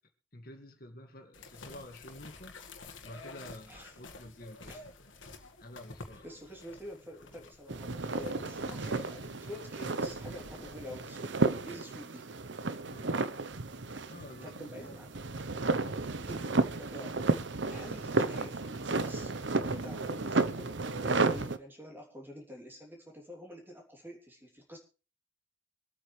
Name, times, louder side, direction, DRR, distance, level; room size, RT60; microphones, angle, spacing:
voice 1, 0.3-2.6 3.0-5.1 5.6-6.3 12.9-13.2 14.1-15.0, left 1 dB, 50° left, 4 dB, 2.1 m, -50 dB
sound 1, 1.3-11.0, left 3 dB, 85° left, 1.9 m, -51 dB
voice 2, 3.7-4.0 4.7-4.8 6.2-12.3 14.4-15.1 16.0-17.4 17.7-19.3 19.6-24.8, equal, 10° right, 0 dB, 3.2 m, -47 dB
sound 2, 7.7-21.6, right 3 dB, 70° right, 0.9 m, -33 dB
24.5 x 8.8 x 3.3 m, 0.36 s
head